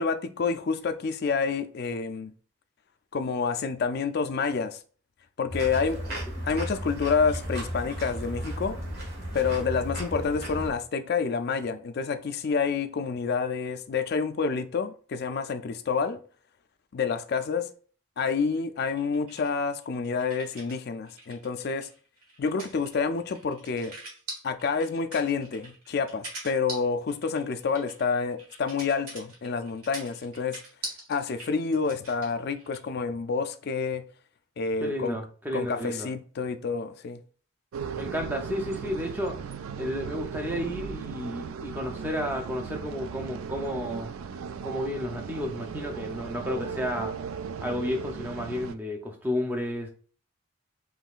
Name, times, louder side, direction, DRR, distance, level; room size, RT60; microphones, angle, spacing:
voice 1, 0.0-2.3 3.1-4.8 5.4-6.0 6.5-8.8 9.3-16.2 16.9-17.7 18.2-21.9 22.4-23.9 24.4-30.6 31.1-34.1 34.6-35.2 35.5-37.2, left 5 dB, 45° left, 0.3 m, -28 dB
sound 1, 5.5-10.7, equal, 45° right, 1.5 m, -34 dB
sound 2, 18.8-20.8 21.1-32.9, right 2 dB, 90° right, 1.6 m, -43 dB
voice 2, 34.8-36.1 38.0-39.4 39.8-44.1 44.6-47.1 47.6-49.9, left 1 dB, 10° right, 0.6 m, -32 dB
sound 3, 37.7-48.8, right 6 dB, 70° right, 0.3 m, -37 dB
5.4 x 3.1 x 2.4 m
head